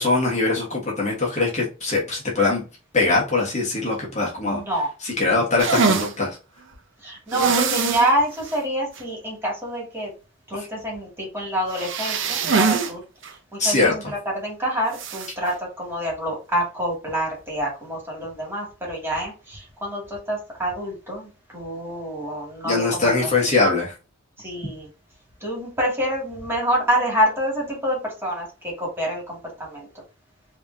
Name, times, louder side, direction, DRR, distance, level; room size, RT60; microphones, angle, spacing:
voice 1, 0.0-2.6 2.9-4.6 5.0-6.4 13.6-13.9 22.6-23.9, left 3 dB, 35° left, -2 dB, 1.3 m, -22 dB
voice 2, 4.4-4.9 7.0-10.1 10.5-13.0 13.3-14.0 14.3-23.1 24.4-24.9 25.4-30.0, equal, 10° right, -3 dB, 2.2 m, -27 dB
sound 1, 5.6-6.1 7.3-8.1 8.5-8.6 9.0-9.1 11.7-12.9 13.2-13.3 14.9-15.3, right 5 dB, 65° right, 0.7 m, -22 dB
4.9 x 3.0 x 2.7 m, 0.32 s
head